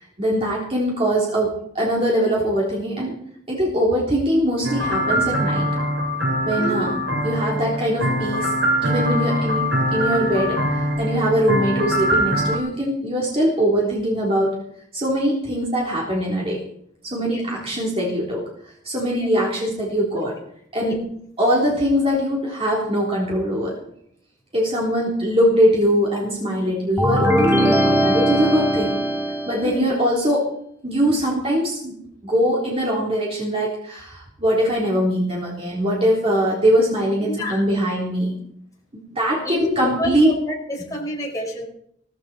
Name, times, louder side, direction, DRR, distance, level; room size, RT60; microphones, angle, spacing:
voice 1, 0.2-3.1 3.5-5.7 6.4-8.5 8.8-9.7 9.9-14.5 14.9-16.6 17.0-18.4 18.8-20.3 20.7-21.0 21.4-23.7 24.5-29.0 29.5-30.4 30.8-32.0 32.2-38.3 39.1-40.3, equal, 30° right, -4 dB, 3.5 m, -22 dB
sound 1, 4.6-12.6, equal, 80° right, 2.9 m, -23 dB
voice 2, 6.5-6.9 17.2-17.4 19.1-19.3 20.8-21.0 29.6-29.9 37.3-37.6 39.4-39.7 40.0-41.7, left 1 dB, 15° left, -1 dB, 4.6 m, -28 dB
sound 2, 27.0-29.8, equal, 10° right, 1.6 m, -20 dB
16.5 x 15.5 x 4.4 m, 0.70 s
head